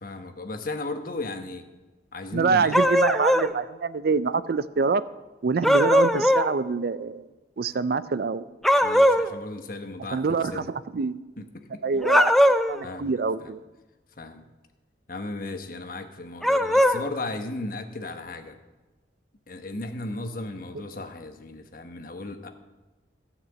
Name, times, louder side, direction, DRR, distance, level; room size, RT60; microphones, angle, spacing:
voice 1, 0.0-1.7 2.1-2.9 8.8-10.7 11.4-11.8 12.8-13.5 14.2-14.4 15.1-18.6 19.5-22.5, left 2 dB, 50° left, 6 dB, 1.1 m, -36 dB
voice 2, 2.3-5.0 5.4-7.3 7.6-8.4 10.1-10.6 10.9-11.2 11.8-12.3 12.7-13.6, right 4 dB, 60° right, 15 dB, 0.4 m, -25 dB
sound 1, 2.7-3.5 5.6-6.5 8.6-9.3 12.0-12.8 16.4-17.0, equal, ahead, 0.4 m, -19 dB
14.0 x 5.9 x 8.1 m, 1.2 s
head